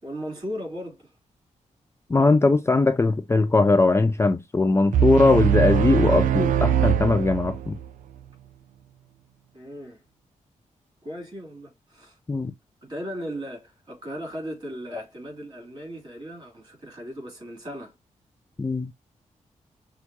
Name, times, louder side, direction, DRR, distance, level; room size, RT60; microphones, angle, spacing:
voice 1, 0.0-1.1 9.5-10.0 11.0-12.2 12.8-17.9, equal, 35° right, 3.2 m, -37 dB
voice 2, 2.1-7.8 12.3-12.5 18.6-18.9, left 3 dB, 20° left, 0.4 m, -20 dB
sound 1, 4.9-7.9, right 9 dB, 90° right, 0.4 m, -22 dB
6.2 x 2.4 x 2.7 m
cardioid pair, 80°, 13 cm